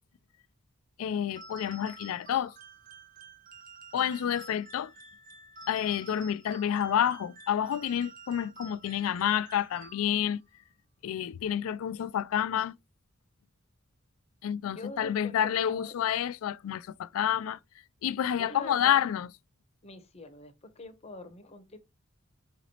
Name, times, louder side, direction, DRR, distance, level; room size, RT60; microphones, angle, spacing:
voice 1, 1.0-2.5 3.9-4.9 5.7-10.4 11.0-12.7 14.4-17.6 18.0-19.3, left 9 dB, 75° left, 0.3 m, -29 dB
sound 1, 1.4-10.4, right 3 dB, 40° right, 0.7 m, -50 dB
voice 2, 14.7-15.9 18.3-19.1 19.8-21.8, left 2 dB, 30° left, 0.7 m, -45 dB
5.0 x 3.0 x 2.8 m
head